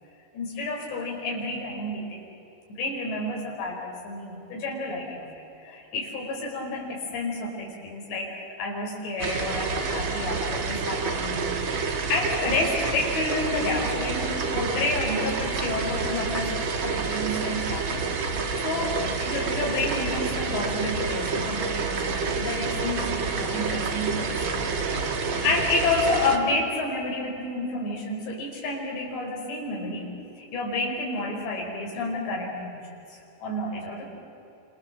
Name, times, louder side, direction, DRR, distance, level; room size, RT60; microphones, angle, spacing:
voice 1, 0.3-2.2 2.7-5.2 5.6-11.6 11.8-16.6 16.8-18.0 18.3-24.6 24.9-25.2 25.4-30.1 30.4-32.8 33.1-34.1, left 2 dB, 80° left, -1 dB, 7.3 m, -30 dB
sound 1, 9.2-26.4, right 4 dB, 55° right, 1.4 m, -28 dB
28.0 x 27.5 x 7.7 m, 2.9 s
omnidirectional pair, 4.9 m